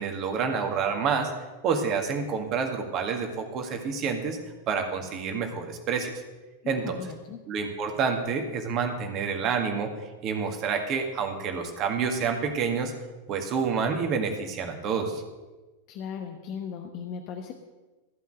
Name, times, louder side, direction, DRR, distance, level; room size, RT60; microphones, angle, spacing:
voice 1, 0.0-1.3 1.6-4.4 4.7-6.1 6.7-7.0 7.5-9.9 10.2-12.9 13.3-15.2, right 5 dB, 35° right, 4 dB, 1.9 m, -28 dB
voice 2, 6.6-7.4 15.9-17.5, left 7 dB, 40° left, 5 dB, 1.0 m, -37 dB
14.5 x 5.7 x 7.6 m, 1.2 s
figure-of-eight pair, 90°, 0 cm